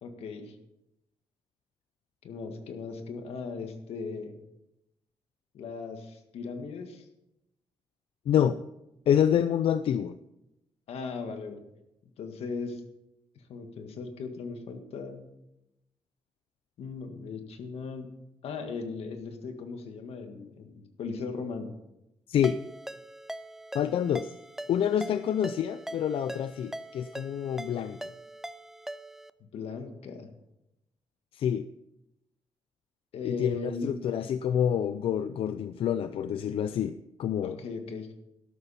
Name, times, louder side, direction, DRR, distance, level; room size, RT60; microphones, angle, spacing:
voice 1, 0.0-0.5 2.2-4.4 5.5-7.1 10.9-11.6 12.2-12.8 13.5-15.3 16.8-18.1 18.4-21.7 29.5-30.3 33.1-33.9 37.4-38.1, left 4 dB, 90° left, 6 dB, 1.7 m, -38 dB
voice 2, 8.3-8.6 9.1-10.1 22.3-22.6 23.7-24.3 24.7-28.0 31.3-31.7 33.2-36.9 37.2-37.6, left 9 dB, 65° left, 12 dB, 0.4 m, -27 dB
Ringtone, 22.4-29.3, right 1 dB, 5° right, 0.4 m, -42 dB
12.5 x 12.0 x 4.3 m, 0.89 s
wide cardioid pair, 150°, 10 cm